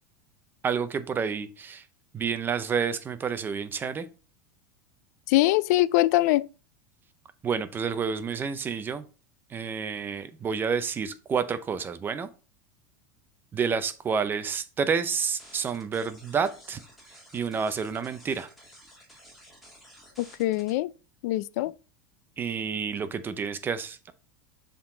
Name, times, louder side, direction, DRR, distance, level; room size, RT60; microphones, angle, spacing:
voice 1, 0.6-1.9 2.1-4.1 7.4-9.0 9.5-12.3 13.5-16.8 17.3-18.5 22.4-24.1, right 6 dB, 20° right, 0.6 m, -29 dB
voice 2, 5.3-6.5 20.2-20.9 21.2-21.7, left 17 dB, 65° left, 0.4 m, -23 dB
sound 1, 15.4-20.7, equal, ahead, 2.2 m, -53 dB
7.0 x 3.8 x 3.8 m
supercardioid pair, 135°, 10 cm